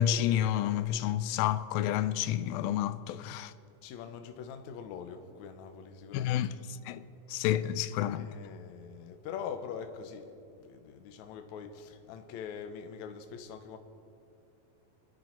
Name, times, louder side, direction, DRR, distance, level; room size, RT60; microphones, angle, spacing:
voice 1, 0.0-3.5 6.1-6.5 6.9-7.0 7.3-8.3, left 11 dB, 90° left, 2.4 m, -29 dB
voice 2, 3.8-6.4 6.9-7.0 8.2-13.8, left 7 dB, 70° left, 2.0 m, -43 dB
29.5 x 10.5 x 4.5 m
omnidirectional pair, 4.1 m